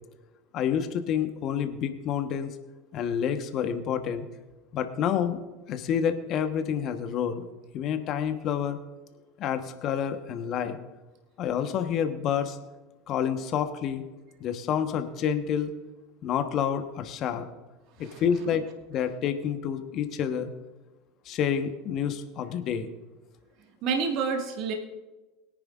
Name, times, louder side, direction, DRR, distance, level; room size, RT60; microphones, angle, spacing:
voice 1, 0.5-2.5 2.9-4.2 4.7-5.4 5.7-7.4 7.7-8.8 9.4-10.8 11.4-12.6 13.1-14.0 14.4-15.7 16.2-17.5 18.0-20.5 21.2-22.9, left 8 dB, 50° left, 8 dB, 1.3 m, -28 dB
voice 2, 23.8-24.7, right 5 dB, 55° right, 2 dB, 1.9 m, -28 dB
22.0 x 9.9 x 2.6 m, 1.1 s
hypercardioid pair, 80°, 0 cm